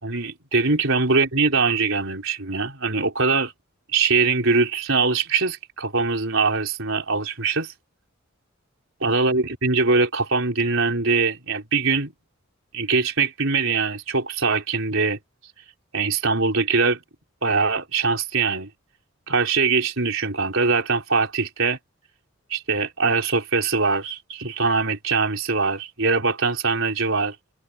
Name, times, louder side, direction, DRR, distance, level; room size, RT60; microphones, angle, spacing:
voice 1, 0.0-3.5 3.9-7.7 9.0-12.1 12.7-15.2 15.9-17.0 17.4-18.7 19.3-21.8 22.5-27.3, right 4 dB, 65° right, 4.8 m, -22 dB
open air
head